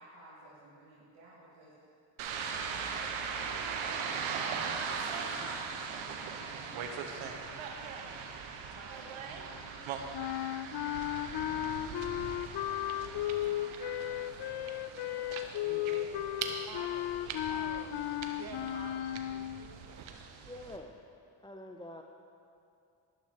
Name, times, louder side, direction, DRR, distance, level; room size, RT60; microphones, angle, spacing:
voice 1, 0.0-3.6 4.0-10.3, right 1 dB, 65° right, -10 dB, 2.8 m, -55 dB
sound 1, 2.2-20.8, right 6 dB, 90° right, 0.9 m, -40 dB
sound 2, 10.1-19.7, left 13 dB, 60° left, 0.5 m, -35 dB
voice 2, 15.4-17.9 18.3-20.0, right 5 dB, 50° right, 5 dB, 1.2 m, -50 dB
voice 3, 20.4-21.0 21.4-22.0, left 1 dB, 10° left, 3 dB, 0.6 m, -46 dB
12.0 x 11.5 x 3.5 m, 2.6 s
cardioid pair, 70°, 46 cm